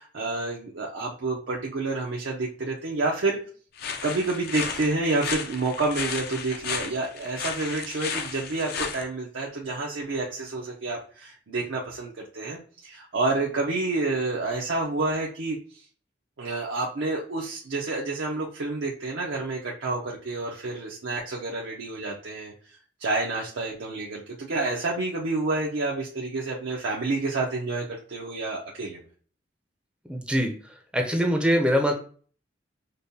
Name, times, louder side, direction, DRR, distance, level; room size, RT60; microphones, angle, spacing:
voice 1, 0.0-3.4 4.0-15.6 16.4-22.5 23.0-29.0, right 3 dB, 80° right, -2 dB, 0.6 m, -29 dB
sound 1, 3.8-9.0, left 6 dB, 55° left, 0.5 m, -33 dB
voice 2, 30.1-30.5 30.9-31.9, equal, 5° right, 2 dB, 0.5 m, -23 dB
5.2 x 2.2 x 2.7 m, 0.43 s
head